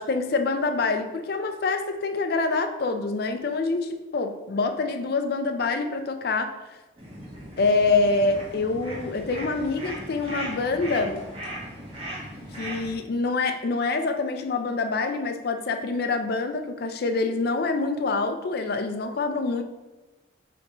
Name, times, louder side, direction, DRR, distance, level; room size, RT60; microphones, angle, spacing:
voice 1, 0.0-6.6 7.6-11.2 12.6-19.6, left 3 dB, 50° left, 7 dB, 0.4 m, -26 dB
sound 1, 7.0-12.9, right 1 dB, 30° right, 1.0 m, -38 dB
5.2 x 3.3 x 3.0 m, 1.1 s
head